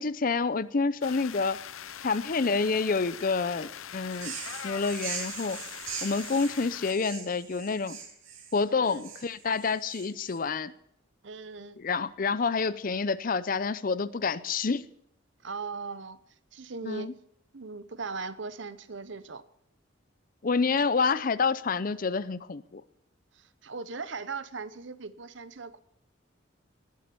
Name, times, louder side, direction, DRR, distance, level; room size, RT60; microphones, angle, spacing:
voice 1, 0.0-1.6 2.0-4.4 4.6-5.6 6.0-8.0 8.5-10.7 11.8-14.9 16.8-17.1 20.4-22.8, left 4 dB, 45° left, 16 dB, 0.5 m, -28 dB
sound 1, 1.0-6.9, left 9 dB, 90° left, 0.7 m, -42 dB
Crows-Funky mixdown, 4.1-10.4, right 6 dB, 85° right, 2.9 m, -41 dB
voice 2, 8.7-9.0 11.2-11.8 15.4-16.2 16.5-17.1 17.5-19.4 23.3-25.8, right 4 dB, 65° right, 14 dB, 0.8 m, -39 dB
20.0 x 7.6 x 6.9 m, 0.74 s
head